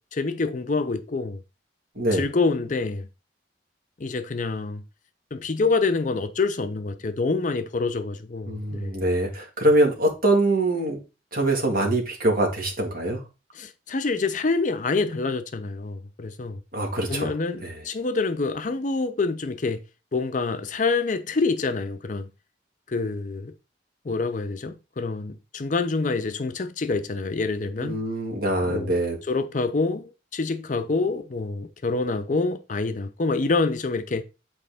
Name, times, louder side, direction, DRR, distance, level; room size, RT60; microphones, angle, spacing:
voice 1, 0.1-1.4 2.1-3.1 4.0-4.8 5.3-8.9 13.6-16.6 17.1-19.8 20.1-22.3 22.9-23.5 24.1-28.0 28.6-29.0 29.3-34.2, left 3 dB, 45° left, 0.5 m, -26 dB
voice 2, 2.0-2.3 8.5-11.0 11.3-13.2 16.7-17.3 17.6-17.8 27.8-29.2, right 1 dB, 50° right, 1.9 m, -23 dB
7.9 x 4.2 x 3.5 m
head